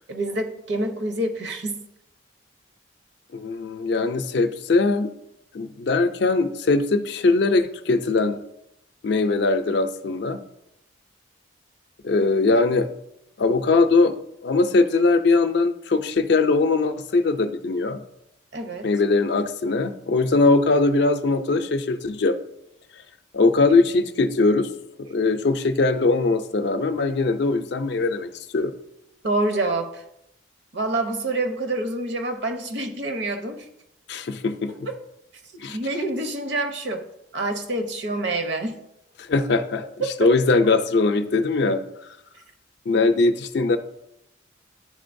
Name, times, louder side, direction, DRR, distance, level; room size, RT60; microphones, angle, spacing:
voice 1, 0.1-1.8 18.5-18.9 29.2-30.0 30.7-33.7 34.9-35.0 35.5-37.1 37.3-38.8 40.0-40.3, right 2 dB, 65° right, 6 dB, 0.8 m, -27 dB
voice 2, 3.3-5.1 5.5-8.4 9.0-10.4 12.0-12.9 13.4-14.1 14.4-18.0 18.8-22.4 23.3-24.7 25.0-28.7 34.1-34.9 35.6-35.8 39.2-39.8 40.2-41.8 42.9-43.8, left 3 dB, 60° left, 9 dB, 0.4 m, -21 dB
10.5 x 3.8 x 2.6 m, 0.82 s
head